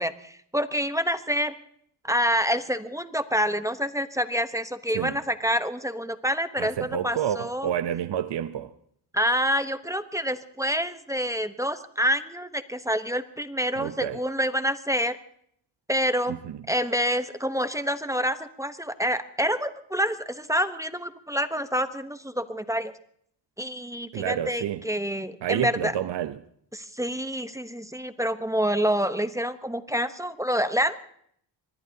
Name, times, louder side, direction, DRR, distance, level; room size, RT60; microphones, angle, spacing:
voice 1, 0.0-1.5 2.0-7.7 9.1-15.2 15.9-16.4 16.7-22.9 23.6-25.9 26.7-31.0, equal, 5° right, 0.9 m, -27 dB
voice 2, 6.6-8.7 13.8-14.2 16.3-16.4 24.1-24.9 25.4-26.4, right 10 dB, 60° right, 0.8 m, -29 dB
24.0 x 20.5 x 2.8 m
cardioid pair, 110°, 46 cm